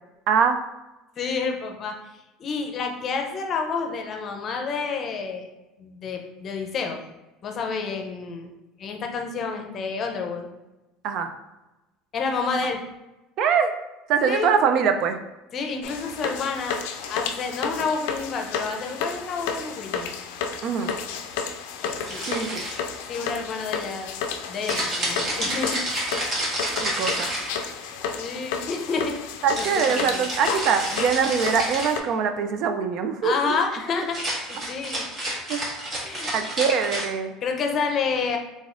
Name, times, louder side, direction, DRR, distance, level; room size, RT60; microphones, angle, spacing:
voice 1, 0.3-0.6 11.0-11.3 13.4-13.7 14.1-15.2 20.6-21.0 22.3-22.7 26.8-27.3 29.4-33.4 35.5-35.6 36.3-37.3, right 6 dB, 55° right, 7 dB, 0.4 m, -23 dB
voice 2, 1.2-1.9 2.4-5.5 5.8-7.0 7.4-8.5 8.8-10.5 12.1-12.8 14.3-14.5 15.5-16.8 17.1-20.1 21.8-22.2 23.1-24.1 24.5-25.8 28.2-29.2 29.8-30.2 33.2-34.2 34.5-35.1 36.0-36.3 37.4-38.4, left 5 dB, 40° left, 3 dB, 0.6 m, -29 dB
sound 1, 15.8-32.0, left 6 dB, 85° left, 0.4 m, -32 dB
sound 2, 22.0-23.0 24.7-27.9 29.6-32.0 34.0-37.1, right 1 dB, 40° right, 1.5 m, -30 dB
3.9 x 3.6 x 2.5 m, 1.0 s
supercardioid pair, 125°, 0 cm